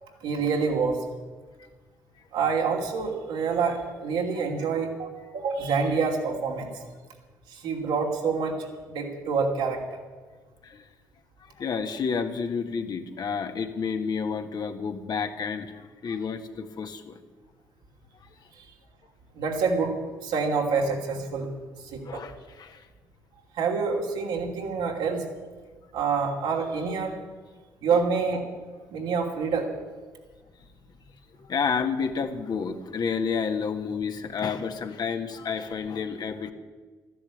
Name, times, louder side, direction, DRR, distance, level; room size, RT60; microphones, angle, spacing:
voice 1, 0.2-1.0 2.3-5.1 5.3-6.7 7.5-9.8 19.4-19.9 20.2-21.5 21.9-22.2 23.6-25.2 25.9-27.2 27.8-28.5 28.9-29.7, right 5 dB, 75° right, 1 dB, 2.8 m, -27 dB
voice 2, 11.6-17.2 22.0-22.8 27.9-28.0 31.4-36.5, left 6 dB, 55° left, 6 dB, 1.6 m, -30 dB
13.0 x 11.0 x 8.4 m, 1.4 s
hypercardioid pair, 50°, 9 cm